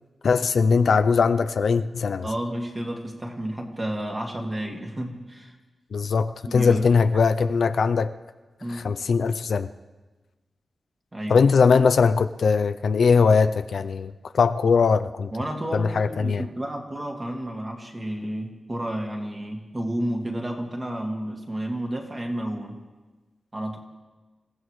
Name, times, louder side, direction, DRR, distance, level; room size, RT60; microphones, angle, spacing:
voice 1, 0.2-2.3 5.9-8.1 8.7-9.7 11.3-15.3 15.7-16.4, left 5 dB, 65° left, 9 dB, 0.5 m, -20 dB
voice 2, 2.2-5.5 6.4-6.9 8.6-8.9 11.1-11.5 15.3-22.8 23.5-23.8, right 1 dB, 25° right, 0 dB, 2.1 m, -31 dB
28.0 x 15.5 x 3.2 m, 1.2 s
wide cardioid pair, 160°, 0 cm